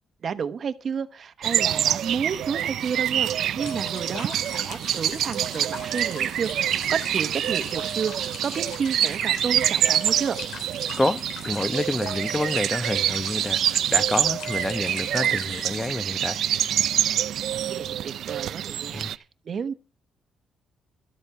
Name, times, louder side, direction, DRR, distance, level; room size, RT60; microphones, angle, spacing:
voice 1, 0.2-10.4 17.7-19.7, right 6 dB, 50° right, 1.1 m, -31 dB
sound 1, 1.4-19.1, right 10 dB, 70° right, 0.5 m, -26 dB
sound 2, 3.6-15.9, left 5 dB, 80° left, 2.8 m, -41 dB
voice 2, 11.0-16.4 18.9-19.1, left 1 dB, 15° left, 0.9 m, -28 dB
12.5 x 8.2 x 5.6 m
cardioid pair, 90°, 0 cm